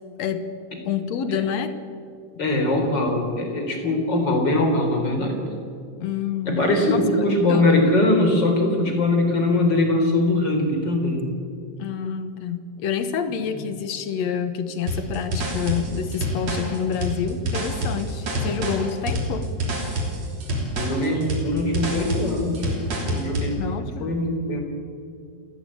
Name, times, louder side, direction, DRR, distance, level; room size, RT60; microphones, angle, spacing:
voice 1, 0.2-0.5 0.9-1.7 6.0-7.9 11.8-19.5 23.6-24.1, left 7 dB, 60° left, 10 dB, 2.2 m, -28 dB
voice 2, 2.4-5.5 6.4-11.2 13.5-13.6 20.8-23.6 24.0-24.6, left 2 dB, 35° left, 3 dB, 4.2 m, -22 dB
sound 1, 14.9-23.6, right 1 dB, 55° right, 4.4 m, -27 dB
29.0 x 14.5 x 8.7 m, 2.3 s
omnidirectional pair, 3.8 m